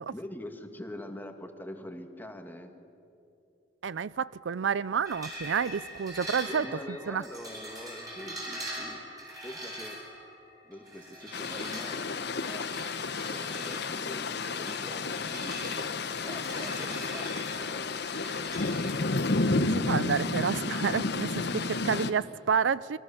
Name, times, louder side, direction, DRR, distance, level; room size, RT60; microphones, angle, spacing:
voice 1, 0.1-2.8 6.4-10.0 10.6-12.7 13.3-18.5, left 1 dB, 10° left, 1.8 m, -44 dB
voice 2, 3.8-6.7 7.1-7.2 19.5-23.0, right 6 dB, 85° right, 0.5 m, -29 dB
sound 1, 5.0-18.9, equal, 20° right, 7.2 m, -43 dB
sound 2, 11.3-22.1, left 3 dB, 65° left, 1.1 m, -31 dB
28.5 x 23.0 x 7.1 m
head